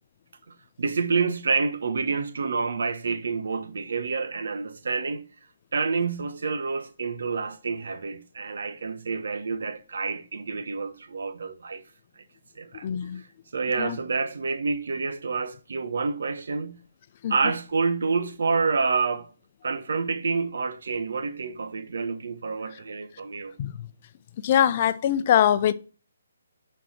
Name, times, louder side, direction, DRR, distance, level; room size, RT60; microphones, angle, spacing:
voice 1, 0.8-5.2 5.7-11.8 12.2-12.3 12.5-12.9 13.1-13.3 13.5-16.8 17.3-19.3 19.6-23.5, right 4 dB, 65° right, 1.2 m, -28 dB
voice 2, 12.8-13.2 13.8-14.0 17.2-17.3 23.6-23.9 24.4-25.7, left 10 dB, 40° left, 0.7 m, -22 dB
11.0 x 4.6 x 5.7 m
figure-of-eight pair, 145°, 0 cm